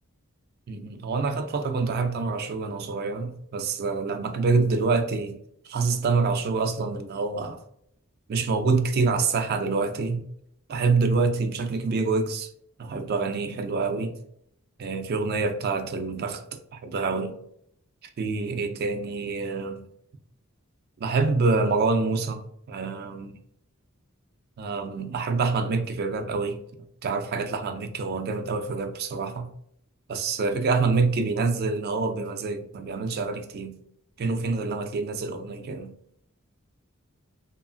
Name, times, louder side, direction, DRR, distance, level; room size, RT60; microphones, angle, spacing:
voice 1, 0.7-5.4 5.6-7.6 8.3-10.3 10.7-12.5 12.8-14.2 14.8-16.5 16.7-17.4 18.2-19.8 21.0-22.4 22.7-23.4 24.6-26.6 27.0-29.5 30.1-33.8 34.2-36.0, right 4 dB, 50° right, 0.3 m, -26 dB
2.8 x 2.5 x 2.4 m
head